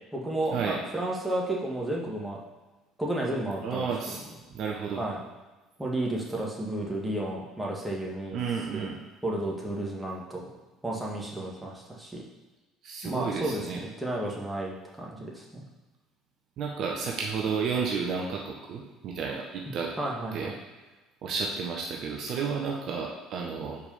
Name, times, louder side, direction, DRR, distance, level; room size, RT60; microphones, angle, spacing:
voice 1, 0.1-2.4 3.0-4.2 4.9-5.2 5.8-8.4 8.7-8.9 9.2-10.5 10.8-12.2 13.0-15.6 20.0-20.5, right 1 dB, 10° right, -3 dB, 1.8 m, -32 dB
voice 2, 3.6-4.2 4.5-5.0 8.3-9.0 12.8-13.8 16.6-19.9 20.3-20.5 21.2-23.8, right 5 dB, 55° right, 0 dB, 0.9 m, -31 dB
5.0 x 4.8 x 5.6 m, 1.2 s
figure-of-eight pair, 60°, 0 cm